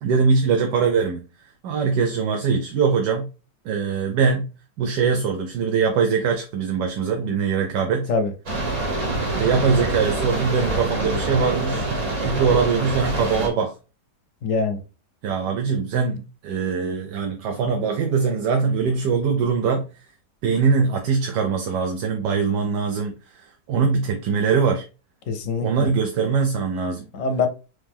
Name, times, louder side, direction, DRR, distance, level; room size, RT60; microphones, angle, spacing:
voice 1, 0.0-3.3 3.6-4.4 4.8-8.1 9.3-11.9 12.2-13.7 15.2-19.8 20.4-24.8 25.6-27.1, right 5 dB, 85° right, 1.2 m, -22 dB
sound 1, 8.5-13.5, right 2 dB, 55° right, 1.8 m, -25 dB
voice 2, 14.4-14.8 25.3-25.9 27.1-27.5, left 4 dB, 65° left, 0.9 m, -23 dB
3.8 x 3.2 x 3.5 m
omnidirectional pair, 1.8 m